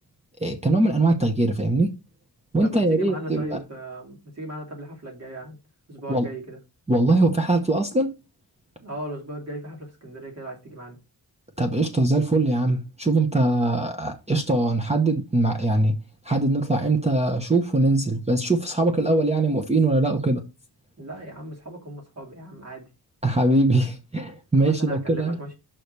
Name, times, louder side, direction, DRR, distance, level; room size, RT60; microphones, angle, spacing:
voice 1, 0.4-1.9 2.5-3.6 6.1-6.3 6.9-8.1 11.6-15.9 16.2-20.4 23.2-25.4, right 2 dB, 15° right, 0.9 m, -22 dB
voice 2, 2.6-5.6 5.9-6.6 8.8-11.0 21.0-22.8 24.6-25.5, right 1 dB, 40° right, 2.9 m, -37 dB
5.8 x 4.9 x 6.6 m
wide cardioid pair, 180°, 39 cm